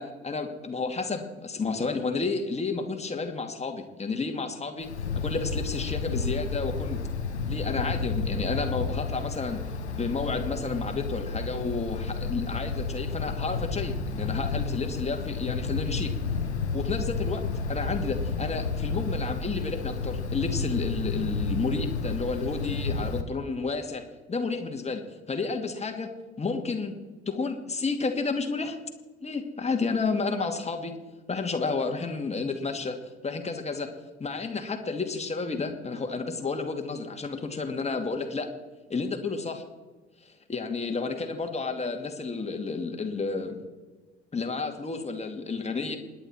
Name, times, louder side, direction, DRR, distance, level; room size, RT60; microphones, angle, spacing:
voice 1, 0.0-4.9 5.2-7.0 7.5-9.6 10.0-16.1 16.7-24.0 24.3-26.9 27.3-28.8 29.2-30.9 31.3-33.0 33.2-33.9 34.2-38.5 38.9-39.6 40.5-43.6 44.3-46.0, left 4 dB, 20° left, 4 dB, 2.4 m, -31 dB
Wind, 4.8-23.2, left 4 dB, 85° left, 1.3 m, -31 dB
28.5 x 10.5 x 4.4 m, 1.3 s
figure-of-eight pair, 60°, 33 cm